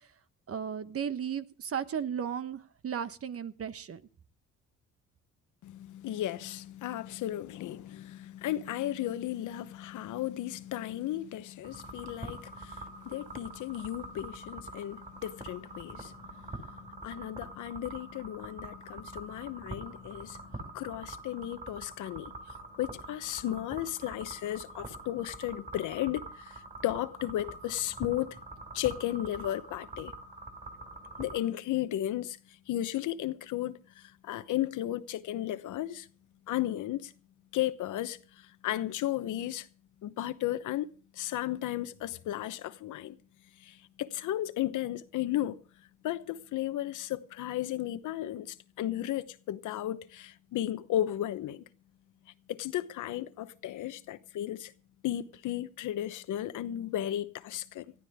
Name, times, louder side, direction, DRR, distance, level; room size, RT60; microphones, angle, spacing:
voice 1, 0.5-4.0, right 8 dB, 50° right, 1.2 m, -35 dB
voice 2, 5.6-28.4 28.7-30.1 31.2-36.1 36.5-37.1 37.5-39.7 40.0-43.2 43.6-45.6 46.0-51.6 52.5-54.7 55.0-57.9, left 13 dB, 80° left, 1.0 m, -35 dB
sound 1, 11.6-31.4, right 2 dB, 25° right, 7.0 m, -45 dB
20.0 x 14.0 x 3.6 m
cardioid pair, 90°, 30 cm